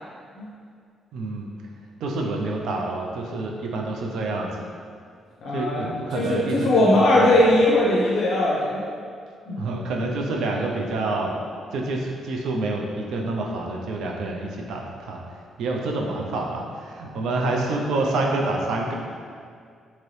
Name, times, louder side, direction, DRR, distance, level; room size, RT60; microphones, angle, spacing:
voice 1, 1.1-1.5 2.0-4.5 5.5-7.4 9.6-11.3 11.7-15.2 15.6-18.9, right 2 dB, 80° right, 0 dB, 0.4 m, -27 dB
voice 2, 5.4-8.8 9.5-9.6, left 1 dB, 70° left, -6 dB, 0.5 m, -20 dB
2.8 x 2.6 x 3.1 m, 2.2 s
cardioid pair, 90°, 0 cm